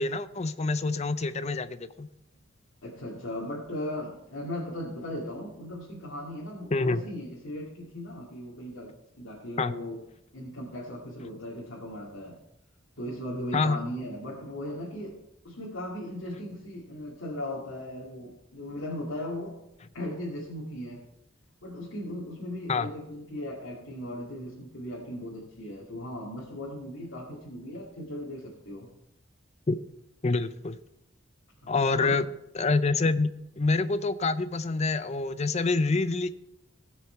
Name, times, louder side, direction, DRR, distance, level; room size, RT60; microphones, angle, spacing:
voice 1, 0.0-2.1 6.7-7.0 9.6-9.7 13.5-13.8 22.7-22.9 29.7-29.8 30.2-30.8 31.7-32.2 32.5-33.3 33.6-36.4, left 3 dB, 35° left, 13 dB, 0.6 m, -26 dB
voice 2, 2.8-10.0 10.3-12.4 13.0-15.2 15.4-19.6 19.9-21.1 21.6-28.9 31.6-32.2, left 1 dB, 85° left, -5 dB, 2.3 m, -37 dB
17.0 x 6.3 x 4.5 m, 0.84 s
head